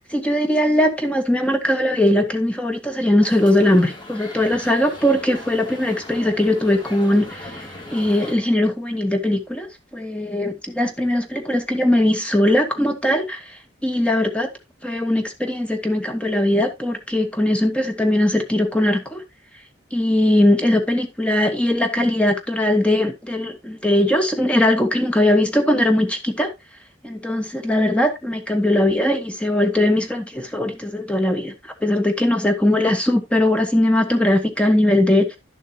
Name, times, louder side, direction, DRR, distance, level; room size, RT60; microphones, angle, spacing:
voice 1, 0.1-9.7 9.9-14.5 14.8-19.2 19.9-26.5 27.0-35.4, left 1 dB, 5° left, 1.2 m, -20 dB
Shanghai Street, 3.2-8.3, left 1 dB, 25° left, 3.3 m, -38 dB
11.0 x 7.4 x 2.9 m
head